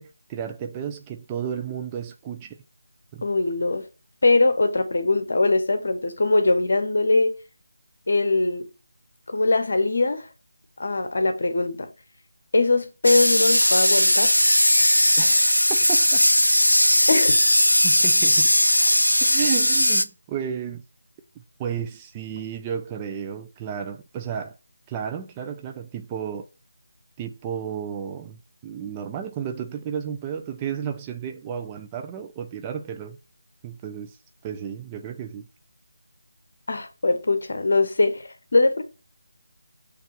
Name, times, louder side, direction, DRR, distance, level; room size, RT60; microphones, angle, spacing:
voice 1, 0.0-2.6 3.1-3.3 15.2-16.3 17.1-17.2 17.8-18.5 19.2-20.8 21.6-24.6 24.9-26.5 27.2-33.2 33.6-34.2 34.4-35.5, right 8 dB, 15° right, 0.4 m, -33 dB
voice 2, 3.2-3.8 4.2-7.3 8.1-8.7 9.3-10.3 10.8-11.9 12.5-14.3 17.1-17.4 36.7-38.8, left 2 dB, 55° left, 1.2 m, -21 dB
sound 1, 13.0-20.0, equal, 90° left, 0.5 m, -18 dB
6.6 x 3.4 x 5.9 m
figure-of-eight pair, 160°, 0 cm